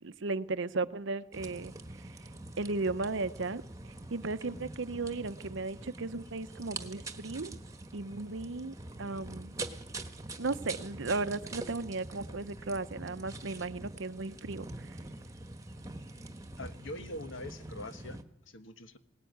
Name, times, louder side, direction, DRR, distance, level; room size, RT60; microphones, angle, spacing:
voice 1, 0.0-1.7 2.2-2.3 2.6-3.6 4.1-7.6 7.9-9.5 10.4-15.0, right 3 dB, 65° right, 14 dB, 0.8 m, -35 dB
sound 1, 1.3-18.2, right 2 dB, 15° right, 1.3 m, -45 dB
voice 2, 16.6-19.0, left 1 dB, 65° left, 9 dB, 1.4 m, -43 dB
21.0 x 18.5 x 9.4 m, 0.82 s
head